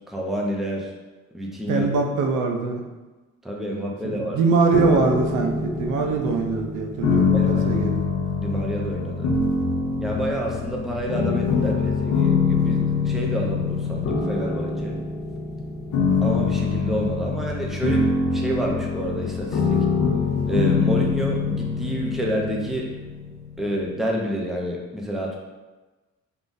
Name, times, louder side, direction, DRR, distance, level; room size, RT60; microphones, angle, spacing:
voice 1, 0.1-0.9 1.3-1.9 3.4-4.4 7.3-7.9 8.4-9.3 10.0-15.0 16.2-19.8 20.5-22.9 23.6-25.4, equal, ahead, -2 dB, 0.5 m, -28 dB
voice 2, 1.7-2.8 4.0-7.9, right 4 dB, 80° right, 3 dB, 0.5 m, -23 dB
sound 1, 4.7-23.7, left 5 dB, 75° left, 0.6 m, -24 dB
3.5 x 2.5 x 2.5 m, 1.2 s
cardioid pair, 90°, 30 cm